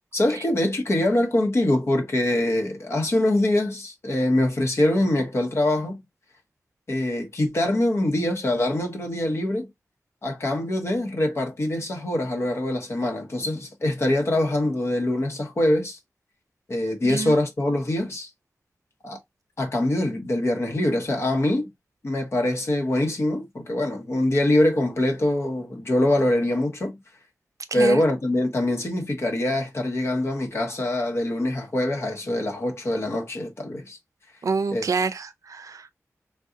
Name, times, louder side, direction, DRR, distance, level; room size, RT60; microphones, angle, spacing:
voice 1, 0.1-6.0 6.9-9.7 10.2-16.0 16.7-18.3 19.0-19.2 19.6-21.7 22.0-27.0 27.7-34.0 34.7-34.9, left 1 dB, 50° left, 0.9 m, -24 dB
voice 2, 17.0-17.4 27.7-28.0 34.4-35.9, right 4 dB, 75° right, 0.4 m, -27 dB
3.7 x 2.3 x 2.6 m
wide cardioid pair, 105°, 6 cm